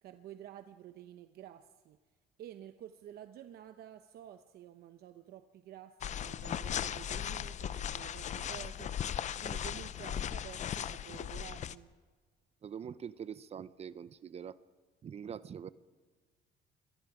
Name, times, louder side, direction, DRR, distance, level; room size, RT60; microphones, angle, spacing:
voice 1, 0.0-2.0 2.4-11.9, right 11 dB, 65° right, 9 dB, 0.9 m, -51 dB
sound 1, 6.0-11.8, left 9 dB, 45° left, 0.6 m, -37 dB
voice 2, 12.6-14.6 15.0-15.7, right 8 dB, 40° right, 16 dB, 0.7 m, -44 dB
27.5 x 22.5 x 5.0 m, 1.5 s
cardioid pair, 110°, 17 cm